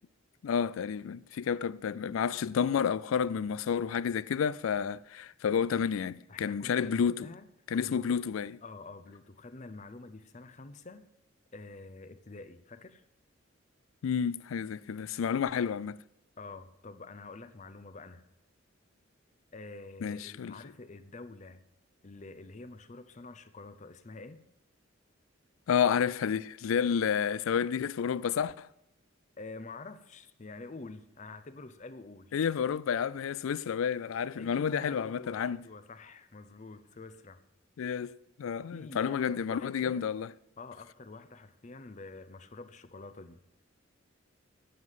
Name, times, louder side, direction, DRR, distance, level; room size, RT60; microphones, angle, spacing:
voice 1, 0.4-7.3 7.7-8.6 14.0-16.0 20.0-20.5 25.7-28.7 32.3-35.6 37.8-40.3, left 7 dB, 80° left, 0.4 m, -30 dB
voice 2, 6.3-7.5 7.7-8.2 8.6-11.1 11.5-13.0 16.4-18.2 19.5-21.6 22.0-24.4 29.4-32.3 34.4-37.4 38.7-40.1 40.6-43.4, left 3 dB, 35° left, 0.6 m, -47 dB
9.4 x 7.3 x 7.6 m
head